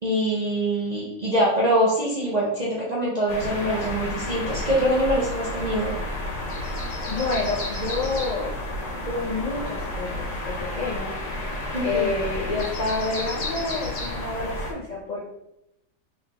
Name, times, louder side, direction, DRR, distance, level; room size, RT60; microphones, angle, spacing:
voice 1, 0.0-5.9 11.7-12.1, right 1 dB, 50° right, -6 dB, 0.4 m, -24 dB
sound 1, 3.3-14.7, left 1 dB, 70° left, 1.4 m, -31 dB
voice 2, 7.1-8.5 9.0-11.1 11.8-15.3, left 3 dB, 85° left, -4 dB, 0.3 m, -28 dB
3.8 x 3.4 x 2.8 m, 0.86 s
omnidirectional pair, 1.7 m